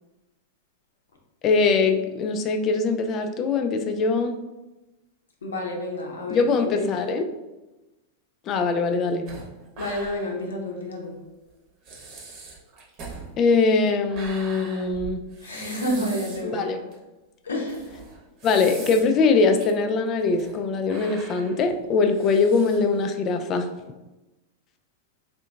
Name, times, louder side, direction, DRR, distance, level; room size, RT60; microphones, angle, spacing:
voice 1, 1.4-4.3 6.3-7.2 8.5-9.3 13.4-15.2 16.4-16.8 18.4-23.7, left 4 dB, 35° left, 6 dB, 0.3 m, -22 dB
voice 2, 5.4-6.9 9.8-11.2 15.4-16.8 17.4-18.0, left 1 dB, 70° left, 1 dB, 0.7 m, -30 dB
sound 1, 9.3-10.4 10.7-10.8 11.5-11.6 11.8-16.5 16.9-17.0 17.7-19.2 19.6-19.7 20.2-20.6 20.9-23.0, right 3 dB, 40° right, 0.9 m, -42 dB
4.2 x 2.7 x 2.3 m, 1.1 s
figure-of-eight pair, 90°, 0 cm